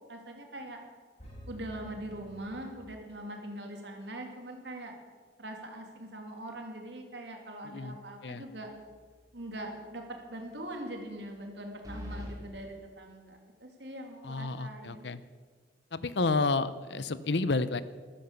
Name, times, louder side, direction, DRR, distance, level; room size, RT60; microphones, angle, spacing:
voice 1, 0.1-0.8 1.5-5.0 5.4-8.7 9.3-10.0 10.3-15.1, right 1 dB, 70° right, 3 dB, 3.1 m, -42 dB
sound 1, 1.2-3.3, left 1 dB, 40° left, 5.5 m, -50 dB
voice 2, 7.6-8.0 8.2-8.4 14.2-15.2 15.9-17.8, left 3 dB, 70° left, 15 dB, 0.8 m, -30 dB
sound 2, 8.7-9.2 9.5-9.6 11.8-12.4, equal, 20° right, 3.3 m, -42 dB
14.0 x 13.0 x 7.0 m, 1.5 s
head